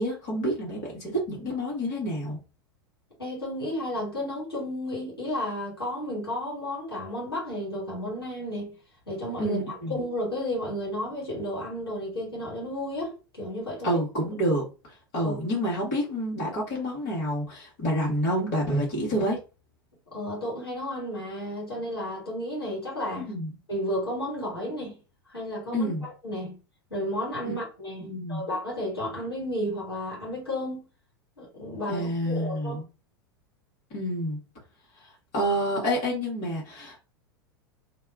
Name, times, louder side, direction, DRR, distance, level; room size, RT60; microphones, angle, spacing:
voice 1, 0.0-2.4 9.4-10.0 13.8-19.4 23.2-23.5 25.7-26.0 27.4-27.5 28.0-28.5 31.9-32.8 33.9-34.4 35.0-37.0, equal, 45° left, 1.4 m, -28 dB
voice 2, 3.2-8.7 9.1-13.9 15.2-15.3 20.1-23.3 23.7-24.9 25.3-26.5 26.9-30.8 31.4-32.8, left 1 dB, 75° left, 1.7 m, -32 dB
2.8 x 2.3 x 3.5 m
figure-of-eight pair, 85°, 12 cm